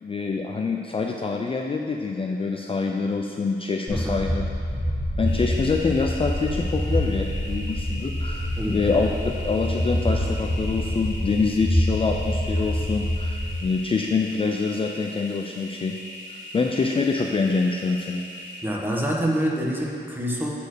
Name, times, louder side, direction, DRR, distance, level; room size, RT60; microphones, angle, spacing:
voice 1, 0.0-4.4 5.2-15.9 16.3-18.2, left 4 dB, 30° left, 2 dB, 0.4 m, -26 dB
sound 1, 3.9-13.6, equal, 10° left, 1.4 m, -26 dB
sound 2, 5.3-18.6, left 1 dB, 85° left, 1.7 m, -40 dB
voice 2, 18.6-20.5, equal, 10° right, -2 dB, 1.2 m, -26 dB
8.3 x 4.3 x 6.6 m, 2.4 s
wide cardioid pair, 125°, 19 cm